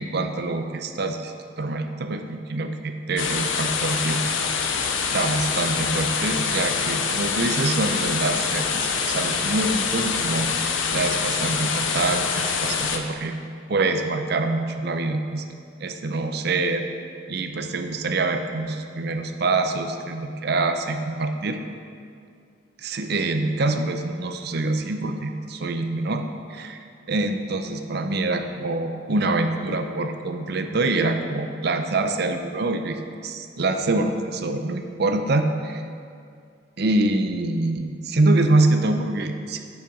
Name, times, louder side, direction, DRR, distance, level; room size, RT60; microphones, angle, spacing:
voice 1, 0.0-4.2 4.8-13.3 13.7-15.4 15.8-16.8 17.3-21.6 22.8-26.8 27.1-35.8 36.8-39.6, right 2 dB, 50° right, 6 dB, 0.6 m, -25 dB
sound 1, 3.2-13.0, left 6 dB, 70° left, 0.7 m, -25 dB
7.4 x 7.2 x 5.3 m, 2.3 s
head